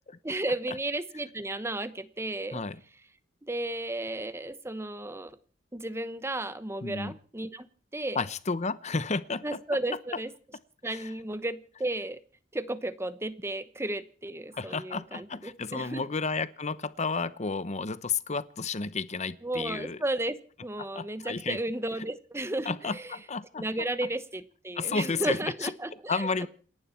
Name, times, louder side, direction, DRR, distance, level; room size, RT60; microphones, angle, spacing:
voice 1, 0.2-2.6 3.4-5.4 5.7-7.7 7.9-8.2 9.4-10.3 10.8-12.2 12.5-16.0 19.4-23.1 23.6-26.5, right 1 dB, 15° right, 13 dB, 1.1 m, -34 dB
voice 2, 2.5-2.8 6.8-7.1 8.1-9.6 10.9-11.1 14.5-20.0 20.8-21.6 22.6-23.7 24.7-25.7 26.1-26.5, left 4 dB, 40° left, 15 dB, 0.9 m, -32 dB
28.5 x 11.0 x 4.5 m, 0.43 s
head